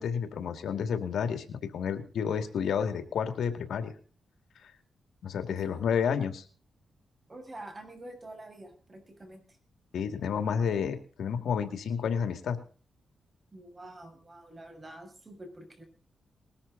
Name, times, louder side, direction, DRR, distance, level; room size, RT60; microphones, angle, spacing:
voice 1, 0.0-3.9 4.6-4.7 5.2-6.4 9.9-12.6, left 7 dB, 85° left, 8 dB, 2.4 m, -30 dB
voice 2, 5.5-5.9 7.3-9.5 13.5-15.8, right 1 dB, 25° right, 4 dB, 6.8 m, -47 dB
21.0 x 13.0 x 4.0 m, 0.40 s
wide cardioid pair, 120°, 0 cm